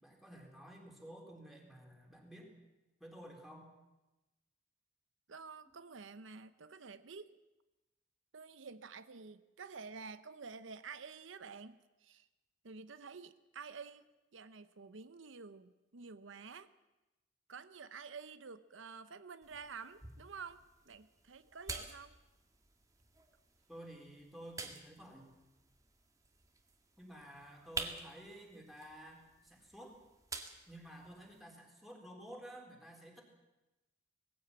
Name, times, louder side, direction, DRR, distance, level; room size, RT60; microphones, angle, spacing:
voice 1, 0.0-2.5 3.0-3.7 23.7-25.3 27.0-29.9 30.7-33.2, right 1 dB, ahead, -1 dB, 4.0 m, -52 dB
voice 2, 5.3-7.3 8.3-12.3 12.6-16.7 17.5-22.1, right 5 dB, 85° right, 12 dB, 0.8 m, -50 dB
sound 1, 19.4-31.4, right 3 dB, 20° right, 1.8 m, -50 dB
19.5 x 15.5 x 8.8 m, 1.0 s
head